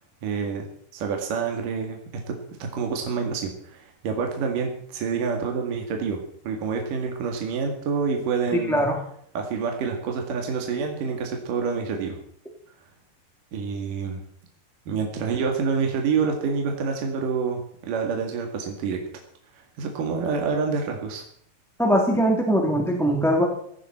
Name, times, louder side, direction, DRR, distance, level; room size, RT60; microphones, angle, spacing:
voice 1, 0.2-0.7 0.9-2.0 2.3-8.8 9.4-12.2 13.5-14.2 14.9-19.0 19.5-21.2, right 5 dB, 65° right, 2 dB, 3.5 m, -27 dB
voice 2, 21.8-23.4, equal, ahead, 0 dB, 2.4 m, -21 dB
17.5 x 15.5 x 4.4 m, 0.66 s
omnidirectional pair, 4.3 m